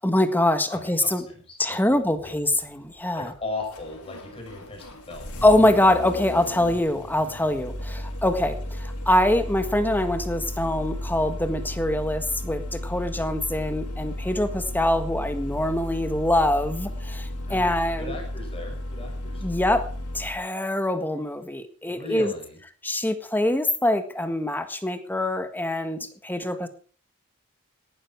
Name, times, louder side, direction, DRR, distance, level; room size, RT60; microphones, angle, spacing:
voice 1, 0.0-1.2 1.6-3.3 5.4-18.1 19.4-19.9 20.1-22.3 22.8-26.7, left 1 dB, 10° left, 8 dB, 1.6 m, -24 dB
voice 2, 0.7-2.3 3.2-5.4 17.5-19.5 21.9-22.6, left 2 dB, 25° left, 0 dB, 6.8 m, -37 dB
Engine starting, 2.1-20.4, left 1 dB, 85° left, 4.3 m, -34 dB
17.5 x 12.0 x 4.7 m, 0.41 s
head